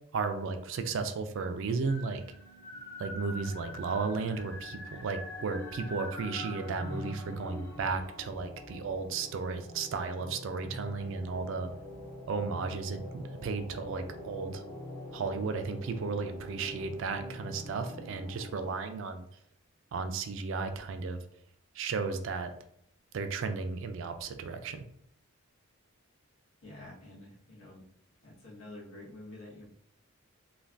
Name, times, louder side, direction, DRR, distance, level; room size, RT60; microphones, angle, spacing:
voice 1, 0.1-2.2 3.0-11.7 12.3-14.6 15.1-19.3 19.9-21.2 21.8-22.5 23.1-24.8, right 4 dB, 60° right, 7 dB, 0.3 m, -34 dB
sound 1, 1.6-18.7, left 1 dB, 10° left, 0.5 m, -44 dB
voice 2, 26.6-27.8 28.2-29.7, left 1 dB, 70° left, -7 dB, 1.3 m, -48 dB
3.2 x 2.2 x 2.5 m, 0.70 s
head